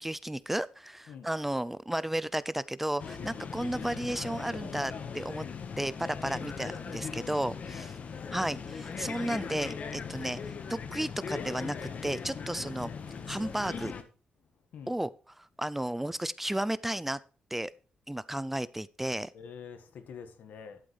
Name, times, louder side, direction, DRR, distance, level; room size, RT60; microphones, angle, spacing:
voice 1, 0.0-5.4 5.8-7.9 8.3-10.4 10.7-11.8 12.0-12.9 13.3-13.9 14.9-15.1 15.4-17.2 17.5-17.7 18.1-19.3, right 1 dB, 10° right, 0.4 m, -33 dB
sound 1, 3.0-14.0, left 6 dB, 55° left, 1.3 m, -39 dB
voice 2, 19.3-20.8, left 6 dB, 80° left, 1.6 m, -46 dB
11.5 x 8.7 x 3.3 m
cardioid pair, 105°, 3 cm